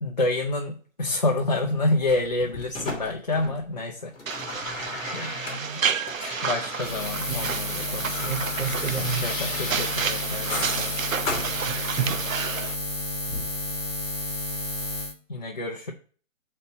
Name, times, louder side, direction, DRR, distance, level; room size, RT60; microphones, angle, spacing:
voice 1, 0.0-4.7 5.1-5.8 6.4-8.4 9.2-11.0 15.3-15.9, left 2 dB, 35° left, 0.6 m, -28 dB
sound 1, 2.1-3.8 4.0-7.6 7.8-12.3 13.3-13.4, left 2 dB, 5° left, 1.0 m, -35 dB
sound 2, 4.3-12.7, right 7 dB, 90° right, 0.7 m, -31 dB
Buzz, 6.8-15.1, left 2 dB, 20° right, 0.6 m, -31 dB
voice 2, 7.3-7.6 8.2-9.3 11.7-12.2 12.6-12.7, right 5 dB, 60° right, 0.9 m, -30 dB
5.9 x 4.2 x 5.2 m
hypercardioid pair, 175°, 39 cm